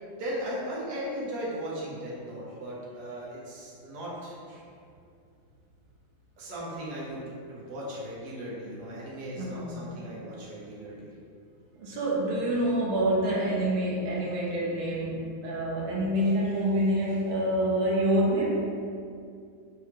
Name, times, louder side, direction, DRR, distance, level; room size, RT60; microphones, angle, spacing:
voice 1, 0.2-4.4 6.4-7.2 7.5-11.1, equal, 55° right, -6 dB, 1.7 m, -37 dB
voice 2, 9.4-9.9 11.8-18.7, right 1 dB, 85° right, -4 dB, 1.8 m, -27 dB
7.8 x 4.0 x 3.1 m, 2.4 s
omnidirectional pair, 2.2 m